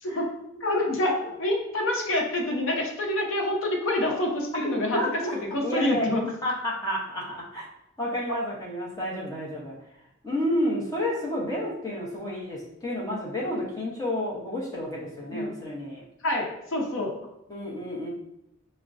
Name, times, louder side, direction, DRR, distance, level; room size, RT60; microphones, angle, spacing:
voice 1, 0.6-5.0 5.5-6.3 8.3-8.4 15.3-15.5 16.2-17.1, left 1 dB, 70° left, 0 dB, 0.7 m, -27 dB
voice 2, 4.6-6.1 6.4-7.7 8.0-9.7 10.2-16.0 17.5-18.1, left 1 dB, 15° left, -5 dB, 0.8 m, -30 dB
5.8 x 2.1 x 2.5 m, 0.84 s
head